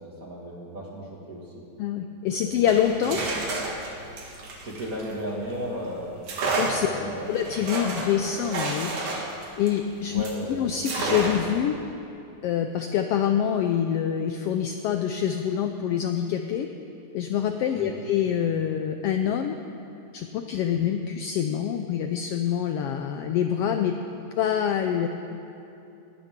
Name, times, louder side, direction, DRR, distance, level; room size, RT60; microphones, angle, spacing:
voice 1, 0.0-1.5 2.4-2.7 3.1-3.3 4.6-6.1 6.8-7.4 10.1-10.7 17.7-18.0, equal, 30° right, -3 dB, 2.0 m, -35 dB
voice 2, 1.8-3.2 6.6-6.9 7.3-9.3 9.6-10.2 10.5-11.7 12.4-16.7 17.1-19.6 20.1-23.9 24.4-25.1, left 9 dB, 85° left, 6 dB, 1.3 m, -26 dB
sound 1, 2.6-5.6 6.2-10.4 10.8-11.6, right 3 dB, 75° right, 3.0 m, -31 dB
19.5 x 15.0 x 3.7 m, 2.8 s
omnidirectional pair, 3.4 m